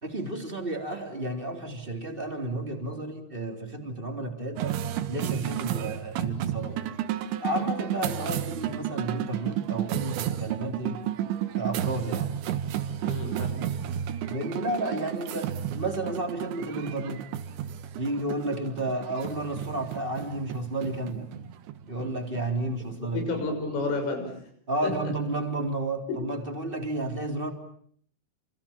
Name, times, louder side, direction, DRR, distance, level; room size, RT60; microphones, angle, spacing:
voice 1, 0.0-4.8 5.0-6.8 7.4-11.0 11.5-12.3 14.2-17.2 17.9-21.3 21.9-23.2 24.7-27.5, right 2 dB, 15° right, 3 dB, 2.8 m, -32 dB
sound 1, 4.6-23.2, right 10 dB, 70° right, 3.4 m, -32 dB
voice 2, 13.0-13.7 23.0-24.4 24.8-25.0 26.1-26.2, left 3 dB, 70° left, 6 dB, 9.1 m, -31 dB
30.0 x 27.0 x 7.4 m, 0.63 s
omnidirectional pair, 6.0 m